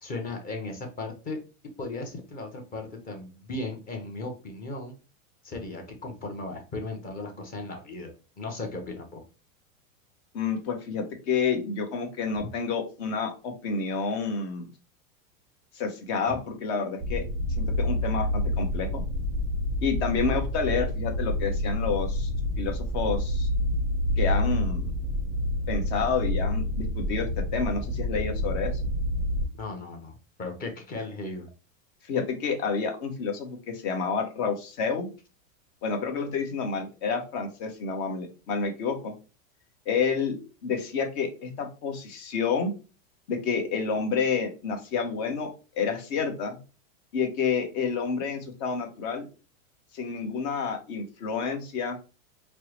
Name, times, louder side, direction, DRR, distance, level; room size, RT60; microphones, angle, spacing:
voice 1, 0.0-1.4 1.8-4.9 5.4-9.2 29.6-31.5, left 2 dB, 20° left, 3 dB, 0.7 m, -36 dB
voice 2, 10.3-14.7 15.7-17.2 17.6-19.0 19.8-22.3 22.6-23.5 24.2-25.0 25.7-28.7 32.0-35.1 35.8-39.1 39.9-42.7 43.3-45.5 45.8-46.6 47.1-49.3 49.9-52.0, left 5 dB, 50° left, 4 dB, 1.0 m, -29 dB
sound 1, 17.0-29.5, left 1 dB, 10° right, 0.5 m, -28 dB
4.4 x 2.1 x 3.1 m, 0.34 s
supercardioid pair, 145°, 41 cm